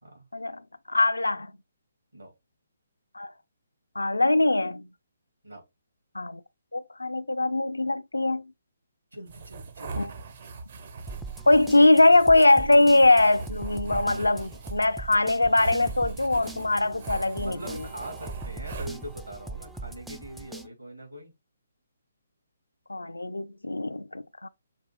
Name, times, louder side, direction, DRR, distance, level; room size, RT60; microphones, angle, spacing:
voice 1, 0.9-1.5 3.2-3.3 4.0-4.9 6.1-6.4 6.7-8.5 10.0-10.1 11.5-17.8 22.9-24.5, left 2 dB, 75° left, 0.3 m, -22 dB
voice 2, 9.1-10.2 17.4-21.3, equal, 75° right, 2.6 m, -42 dB
sound 1, 9.3-19.4, right 4 dB, 45° right, 0.7 m, -41 dB
sound 2, 11.1-20.7, right 3 dB, 5° right, 0.3 m, -40 dB
6.4 x 2.5 x 3.0 m
figure-of-eight pair, 135°, 0 cm